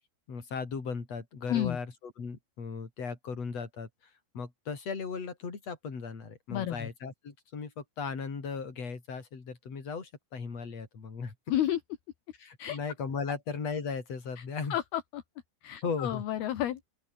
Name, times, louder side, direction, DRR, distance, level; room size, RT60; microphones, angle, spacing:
voice 1, 0.3-3.9 4.3-11.3 12.4-14.8 15.8-16.2, left 5 dB, 35° left, 5.2 m, -37 dB
voice 2, 6.5-6.9 11.5-11.8 12.6-12.8 14.4-14.5 14.7-15.2 15.6-16.8, left 12 dB, 60° left, 3.2 m, -31 dB
open air
omnidirectional pair, 5.7 m